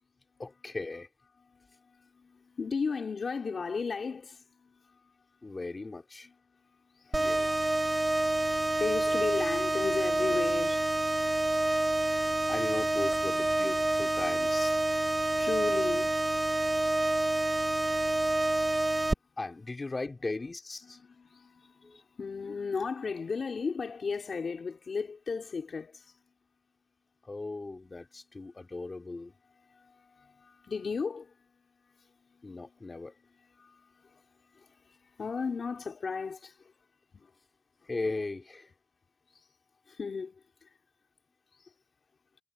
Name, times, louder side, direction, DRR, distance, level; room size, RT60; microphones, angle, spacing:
voice 1, 0.4-1.1 5.4-6.3 7.2-7.6 12.5-14.8 19.4-21.0 21.8-22.0 27.2-29.3 32.4-33.1 37.9-38.7, left 3 dB, 45° left, 3.4 m, -37 dB
voice 2, 1.4-5.6 6.2-11.0 11.7-11.8 15.2-16.4 16.6-16.7 18.7-18.9 19.2-19.3 20.8-26.2 28.5-28.6 29.5-36.9 37.1-37.4 37.8-37.9 39.3-39.5 39.9-40.8 41.5-41.7, left 5 dB, 75° left, 2.6 m, -37 dB
sound 1, 7.1-19.1, right 2 dB, 30° right, 0.8 m, -28 dB
cardioid pair, 45°, 0 cm